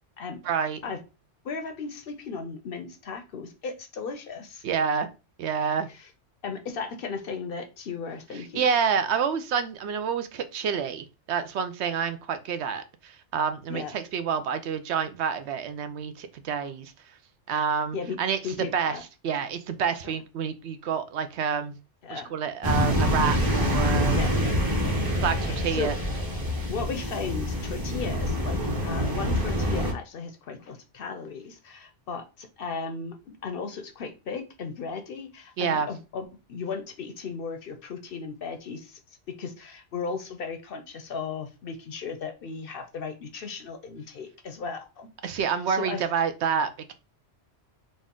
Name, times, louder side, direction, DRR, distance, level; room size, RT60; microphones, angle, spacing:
voice 1, 0.4-0.8 4.6-5.1 5.4-5.9 8.3-17.2 17.5-19.0 19.2-21.8 22.1-24.2 24.9-25.9 35.6-35.9 45.2-46.9, right 6 dB, 75° right, 10 dB, 0.8 m, -28 dB
voice 2, 1.4-4.6 6.4-8.7 13.7-13.9 17.9-18.2 18.4-19.0 22.0-22.3 24.1-24.3 25.5-25.9 26.6-39.0 39.3-46.0, left 5 dB, 60° left, 7 dB, 0.7 m, -36 dB
sound 1, 22.6-29.9, equal, 20° right, 0.9 m, -26 dB
4.2 x 2.4 x 3.6 m, 0.29 s
omnidirectional pair, 1.2 m